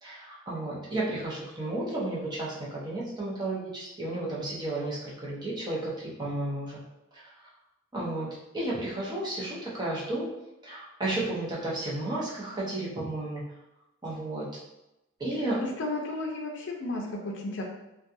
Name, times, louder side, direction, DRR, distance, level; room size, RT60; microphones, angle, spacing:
voice 1, 0.0-6.8 7.1-7.3 7.9-10.3 10.6-13.4 14.0-14.5 15.2-15.6, right 2 dB, 20° right, -6 dB, 0.7 m, -33 dB
voice 2, 15.6-17.6, left 2 dB, 60° left, 0 dB, 0.5 m, -33 dB
2.4 x 2.3 x 2.6 m, 0.94 s
head